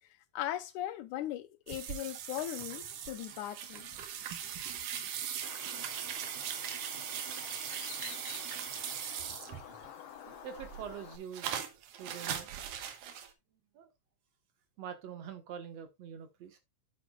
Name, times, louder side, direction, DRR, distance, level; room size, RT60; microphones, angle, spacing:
voice 1, 0.3-3.9, left 13 dB, 90° left, 2.3 m, -38 dB
sound 1, 1.7-9.9 10.3-13.3, right 9 dB, 80° right, 2.6 m, -40 dB
Bird, 5.4-11.2, left 10 dB, 65° left, 1.7 m, -50 dB
voice 2, 10.4-11.6 12.0-12.5 13.7-13.9 14.8-16.6, right 8 dB, 65° right, 2.2 m, -44 dB
9.4 x 8.5 x 2.3 m
omnidirectional pair, 3.5 m